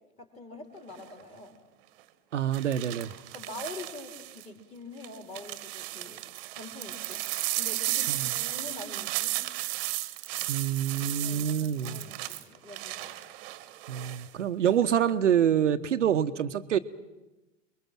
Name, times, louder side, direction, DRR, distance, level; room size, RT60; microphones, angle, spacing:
voice 1, 0.2-1.5 3.3-6.2 6.5-7.2 7.6-9.4 11.2-13.4, left 2 dB, 15° left, 3 dB, 4.1 m, -44 dB
sound 1, 0.9-1.2 2.5-4.5 5.0-14.3 14.6-15.1, right 17 dB, 45° right, 1.4 m, -35 dB
voice 2, 2.3-3.1 8.1-8.3 10.5-12.0 13.9-16.8, right 9 dB, 65° right, 9 dB, 1.0 m, -26 dB
29.0 x 21.5 x 6.1 m, 1.0 s
figure-of-eight pair, 95°, 39 cm